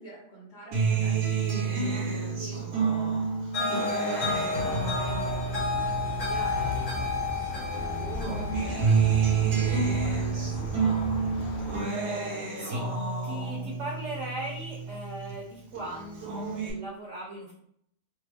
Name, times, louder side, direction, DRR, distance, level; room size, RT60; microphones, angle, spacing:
voice 1, 0.0-11.0, right 1 dB, 40° left, -8 dB, 0.8 m, -46 dB
Acoustic guitar, 0.7-7.4 7.7-15.4 15.8-16.7, right 5 dB, 80° right, 1.4 m, -29 dB
sound 1, 3.5-10.7, left 4 dB, 55° left, 1.2 m, -32 dB
sound 2, 4.5-11.8, equal, 75° left, 1.1 m, -37 dB
voice 2, 12.6-17.5, right 2 dB, 60° right, -3 dB, 1.0 m, -38 dB
3.4 x 2.0 x 3.3 m, 0.70 s
omnidirectional pair, 1.7 m